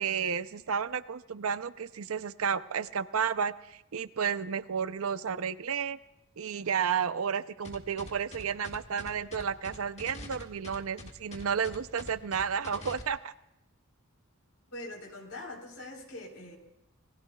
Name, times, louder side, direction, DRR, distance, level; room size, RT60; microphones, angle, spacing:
voice 1, 0.0-6.0 6.4-13.3, right 7 dB, 70° right, 14 dB, 0.6 m, -32 dB
sound 1, 7.6-13.0, left 1 dB, 30° left, 1.7 m, -44 dB
voice 2, 14.7-16.6, left 2 dB, 85° left, 1 dB, 3.8 m, -43 dB
27.5 x 21.5 x 2.3 m, 0.87 s
head